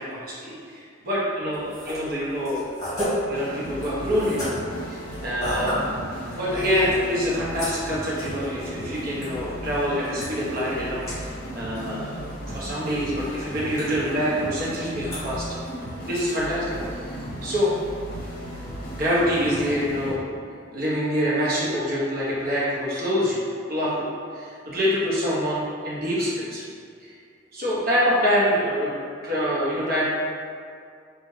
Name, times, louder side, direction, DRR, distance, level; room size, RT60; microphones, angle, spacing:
voice 1, 0.0-2.7 3.0-4.4 4.9-5.8 6.3-15.5 16.1-16.8 17.1-17.7 19.0-20.2 20.7-26.6 27.0-27.1 27.5-28.9 29.2-30.0, equal, 50° right, -7 dB, 0.9 m, -26 dB
sound 1, 1.5-18.1, equal, 15° left, 1.3 m, -36 dB
sound 2, 3.3-20.2, equal, 50° left, 0.6 m, -36 dB
4.2 x 2.3 x 3.1 m, 2.2 s
head